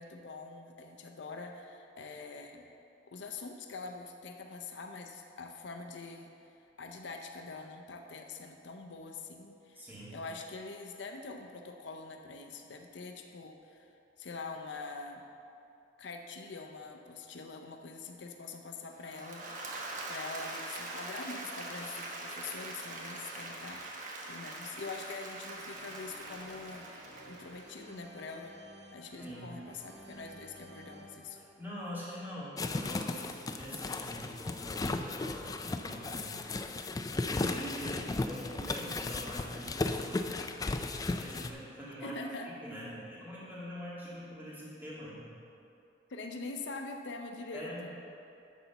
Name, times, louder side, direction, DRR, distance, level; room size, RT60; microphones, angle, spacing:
voice 1, 0.0-2.7 3.1-6.3 6.8-13.9 14.2-15.2 16.0-23.8 24.2-28.5 28.9-31.4 42.0-42.5 46.1-47.9, left 3 dB, 70° left, 4 dB, 0.6 m, -44 dB
voice 2, 9.7-10.2 29.2-29.6 31.4-35.5 35.8-36.6 37.1-40.5 41.2-42.2 42.6-45.3 47.5-47.9, equal, 10° right, -8 dB, 2.3 m, -44 dB
Applause / Crowd, 18.9-28.1, right 2 dB, 45° right, 1.0 m, -43 dB
sound 1, 25.5-32.5, right 1 dB, 65° right, 1.3 m, -54 dB
Unpack the gift box, 32.6-41.5, left 3 dB, 20° left, 0.3 m, -35 dB
10.0 x 4.2 x 6.8 m, 2.7 s
head